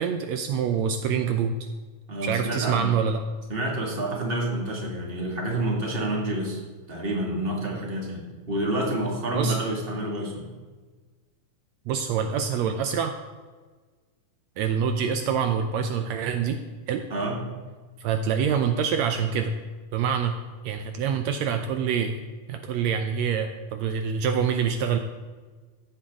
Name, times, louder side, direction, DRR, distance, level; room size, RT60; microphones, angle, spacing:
voice 1, 0.0-1.6 2.2-3.2 9.3-9.6 11.9-13.2 14.6-16.6 16.9-17.0 18.0-19.5 19.9-20.4 20.6-22.1 22.5-25.0, right 7 dB, 90° right, 6 dB, 1.5 m, -26 dB
voice 2, 2.1-2.9 3.5-6.6 6.9-8.2 8.5-10.5 17.1-17.4, right 1 dB, 20° right, -1 dB, 1.7 m, -28 dB
15.0 x 8.7 x 3.7 m, 1.4 s
omnidirectional pair, 3.9 m